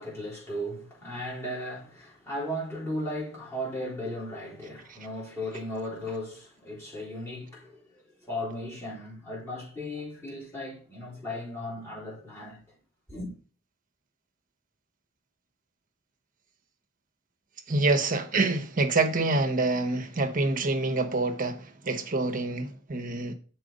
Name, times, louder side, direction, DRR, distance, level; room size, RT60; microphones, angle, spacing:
voice 1, 0.0-12.6 13.1-13.3, left 1 dB, 15° left, 4.0 m, -36 dB
voice 2, 17.7-23.3, right 3 dB, 40° right, 0.9 m, -26 dB
6.6 x 4.5 x 5.1 m
head